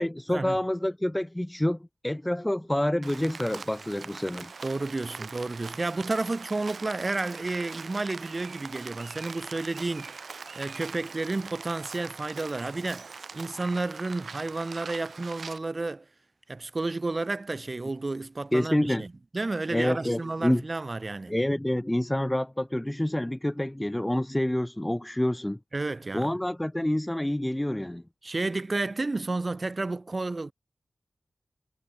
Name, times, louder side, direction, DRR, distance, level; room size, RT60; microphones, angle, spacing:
voice 1, 0.0-4.5 18.5-19.0 19.7-20.6 21.3-25.6 26.1-28.0, left 1 dB, 15° left, 0.4 m, -27 dB
Rain, 3.0-15.6, right 5 dB, 75° right, 4.4 m, -42 dB
voice 2, 4.6-16.1 16.5-21.3 25.7-26.3 28.2-30.5, right 3 dB, 45° right, 2.1 m, -31 dB
cardioid pair, 50°, 0 cm